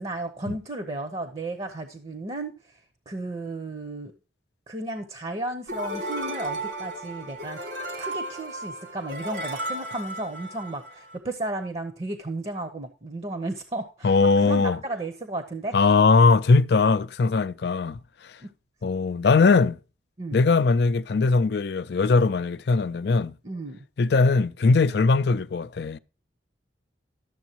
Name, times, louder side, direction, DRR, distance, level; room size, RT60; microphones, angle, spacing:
voice 1, 0.0-2.8 3.1-4.1 4.7-7.6 8.0-15.8 18.4-18.5 20.2-20.4 23.4-23.8, right 2 dB, 30° right, 0.8 m, -34 dB
sound 1, 5.7-11.2, right 1 dB, 75° right, 2.4 m, -34 dB
voice 2, 14.0-14.8 15.7-18.4 18.8-19.8 20.3-23.3 24.0-26.0, left 4 dB, 60° left, 0.4 m, -20 dB
12.0 x 7.1 x 2.9 m
head